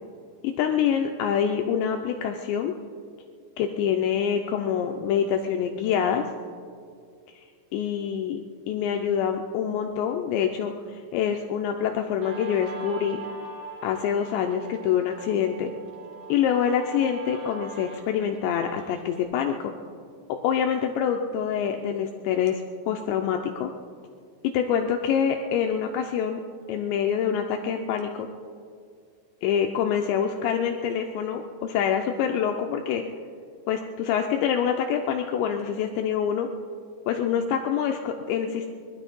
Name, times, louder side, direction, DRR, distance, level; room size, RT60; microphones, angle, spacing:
voice 1, 0.4-2.7 3.6-6.3 7.7-8.4 8.7-13.2 13.8-15.7 16.3-19.7 20.3-23.7 24.5-26.4 26.7-28.3 29.4-33.1 33.7-36.5 37.1-38.7, left 8 dB, 80° left, 4 dB, 2.6 m, -26 dB
Guitar, 12.2-19.2, right 4 dB, 45° right, 2.7 m, -42 dB
21.0 x 12.5 x 5.3 m, 2.2 s
omnidirectional pair, 5.7 m